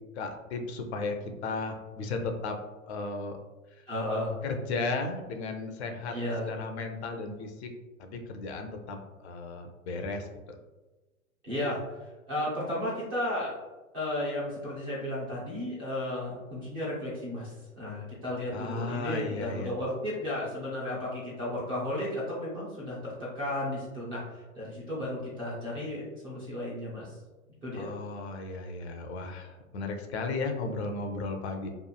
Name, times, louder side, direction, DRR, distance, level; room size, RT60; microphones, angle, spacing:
voice 1, 0.2-1.2 1.4-2.6 2.9-3.4 3.7-3.8 4.4-6.1 6.5-7.7 8.0-9.0 9.2-10.3 18.5-19.7 27.7-31.7, left 3 dB, 50° left, 5 dB, 0.5 m, -35 dB
voice 2, 3.9-4.3 6.1-6.6 11.4-13.5 13.9-27.2 27.6-27.9, left 1 dB, 15° right, -8 dB, 0.4 m, -34 dB
3.0 x 2.4 x 2.3 m, 1.2 s
hypercardioid pair, 120°, 42 cm